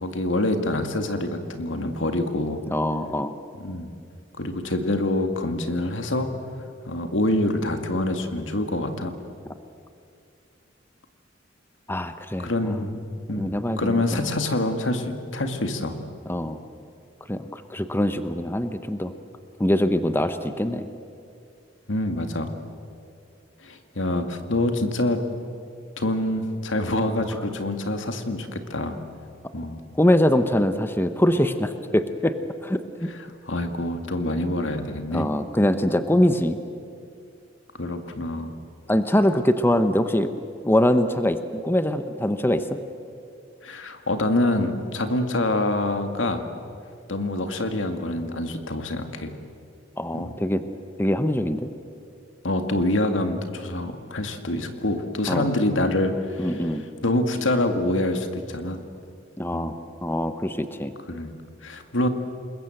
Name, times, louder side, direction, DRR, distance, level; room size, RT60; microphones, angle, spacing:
voice 1, 0.0-2.6 3.6-3.9 4.4-6.4 6.9-9.1 12.4-12.9 13.3-16.0 21.9-22.6 23.6-25.3 26.0-29.0 29.5-29.8 33.1-33.2 33.4-35.3 37.8-38.5 43.6-46.5 47.1-49.4 50.1-50.3 52.4-56.7 57.0-58.8 59.5-59.7 61.1-61.3 61.6-62.1, left 1 dB, 85° left, 6 dB, 2.1 m, -26 dB
voice 2, 2.7-3.3 11.9-12.9 13.4-14.3 16.3-16.6 17.3-19.1 19.6-20.9 27.2-27.3 29.9-32.4 32.6-33.1 35.1-36.6 38.9-40.3 40.6-42.8 50.0-50.6 51.0-51.7 55.3-55.5 56.4-56.8 59.4-59.7 60.0-60.9, left 1 dB, 10° left, 10 dB, 0.9 m, -23 dB
28.0 x 21.5 x 7.9 m, 2.4 s
head